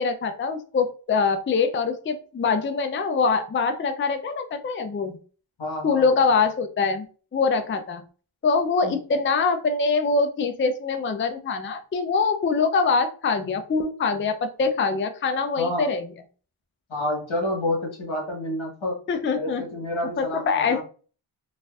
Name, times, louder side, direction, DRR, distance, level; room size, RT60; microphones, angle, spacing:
voice 1, 0.0-5.2 5.8-7.1 7.3-8.0 8.4-16.0 19.1-19.7 20.2-20.8, left 4 dB, 30° left, 7 dB, 0.4 m, -24 dB
voice 2, 5.6-6.1 8.8-8.9 15.6-15.9 16.9-19.0 19.3-20.8, left 1 dB, 85° left, -1 dB, 1.4 m, -29 dB
4.0 x 2.5 x 2.3 m, 0.39 s
wide cardioid pair, 60°, 46 cm